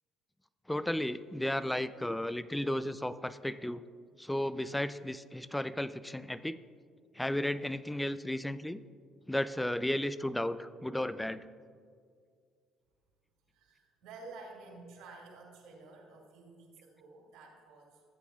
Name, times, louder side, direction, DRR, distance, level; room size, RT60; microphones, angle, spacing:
voice 1, 0.7-3.8 4.2-6.6 7.1-8.8 9.3-11.4, left 1 dB, 10° left, 15 dB, 0.4 m, -34 dB
voice 2, 13.5-18.0, right 3 dB, 75° right, -1 dB, 2.4 m, -51 dB
15.0 x 8.4 x 2.4 m, 2.2 s
hypercardioid pair, 60°, 0 cm